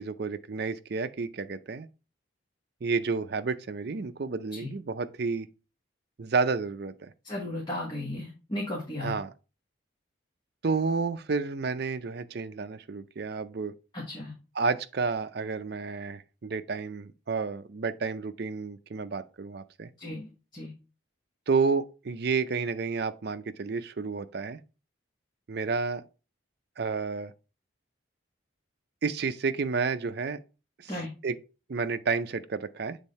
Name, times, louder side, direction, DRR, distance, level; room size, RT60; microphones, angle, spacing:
voice 1, 0.0-1.9 2.8-5.5 6.2-7.1 9.0-9.3 10.6-13.7 14.5-19.9 21.5-24.6 25.5-26.0 26.8-27.3 29.0-30.4 30.8-30.9 31.2-31.4 31.7-33.0, right 4 dB, 55° right, 0.5 m, -30 dB
voice 2, 7.2-9.1 13.9-14.3 20.0-20.2 20.5-20.7 30.9-31.1, left 1 dB, 25° left, 1.4 m, -35 dB
7.3 x 3.5 x 4.2 m
head